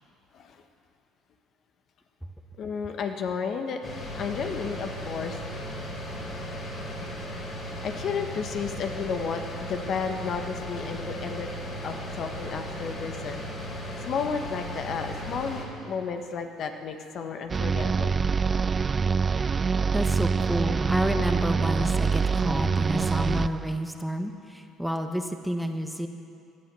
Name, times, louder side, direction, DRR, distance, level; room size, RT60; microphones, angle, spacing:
voice 1, 2.6-3.8 4.2-5.6 7.6-11.5 11.8-13.4 14.0-18.2, left 6 dB, 55° left, 5 dB, 1.4 m, -32 dB
sound 1, 3.8-15.6, equal, 40° left, 4.3 m, -36 dB
sound 2, 17.5-23.8, right 5 dB, 30° right, 0.3 m, -25 dB
voice 2, 19.9-26.1, equal, ahead, 5 dB, 1.2 m, -30 dB
17.5 x 11.0 x 6.9 m, 2.5 s
supercardioid pair, 85°, 0 cm